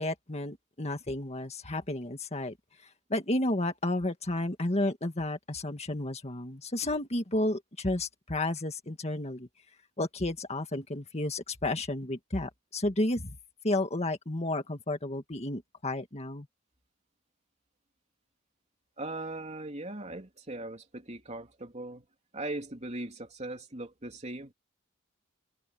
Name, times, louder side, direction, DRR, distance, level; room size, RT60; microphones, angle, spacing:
voice 1, 0.0-2.5 3.1-9.5 10.0-13.4 13.6-16.5, left 1 dB, 30° left, 1.9 m, -32 dB
voice 2, 19.0-22.0 22.3-24.5, right 2 dB, 35° right, 3.2 m, -39 dB
head